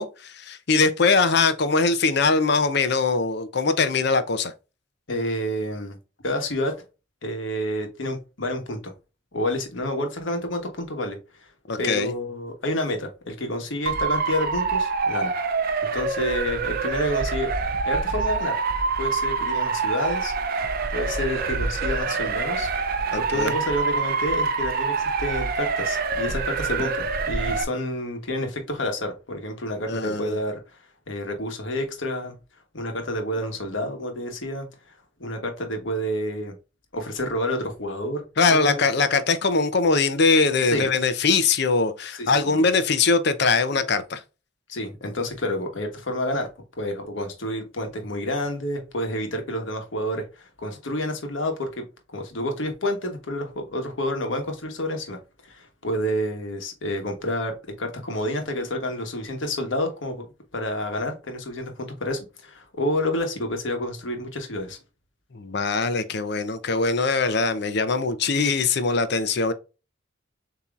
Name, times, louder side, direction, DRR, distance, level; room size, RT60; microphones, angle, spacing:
voice 1, 0.0-4.5 11.7-12.1 23.1-23.5 29.9-30.4 38.4-44.2 65.3-69.5, left 4 dB, 60° left, 0.6 m, -22 dB
voice 2, 5.1-6.0 6.2-6.7 7.2-8.9 9.3-11.2 11.8-15.3 15.9-17.5 17.9-18.6 19.0-20.3 20.9-22.7 23.1-30.8 31.1-32.3 32.7-34.7 35.2-36.6 36.9-38.2 38.5-38.8 40.6-40.8 42.2-42.6 44.7-46.5 46.8-51.8 52.1-55.2 55.4-60.2 60.5-64.8, left 1 dB, 75° left, 1.2 m, -29 dB
Motor vehicle (road) / Siren, 13.8-27.6, right 4 dB, 50° right, 0.6 m, -26 dB
6.9 x 3.0 x 2.4 m
head